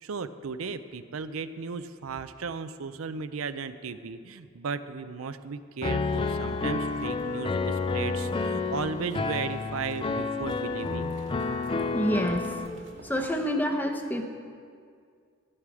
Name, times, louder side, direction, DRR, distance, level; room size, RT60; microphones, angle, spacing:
voice 1, 0.0-11.1, right 5 dB, 85° right, 11 dB, 0.6 m, -35 dB
Piano, 5.8-12.7, left 3 dB, 25° left, 0.4 m, -30 dB
sound 1, 6.0-13.3, right 1 dB, 60° right, 1.0 m, -50 dB
voice 2, 11.9-12.6 13.0-14.3, equal, 10° left, 3 dB, 0.8 m, -28 dB
12.5 x 11.5 x 4.9 m, 2.2 s
head